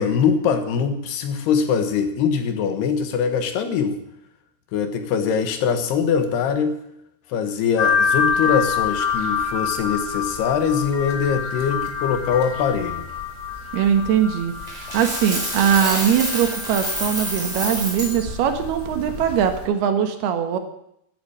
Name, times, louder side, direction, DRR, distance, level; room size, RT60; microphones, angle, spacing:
voice 1, 0.0-4.0 4.7-6.8 7.3-13.1, left 6 dB, 90° left, 7 dB, 3.6 m, -22 dB
sound 1, 7.8-19.7, left 6 dB, 30° left, 1.8 m, -27 dB
voice 2, 13.7-14.5 14.9-20.6, right 8 dB, 85° right, 7 dB, 3.5 m, -21 dB
Coin (dropping), 14.7-18.2, right 1 dB, 10° right, 5.1 m, -27 dB
12.5 x 11.5 x 8.8 m, 0.76 s
omnidirectional pair, 4.5 m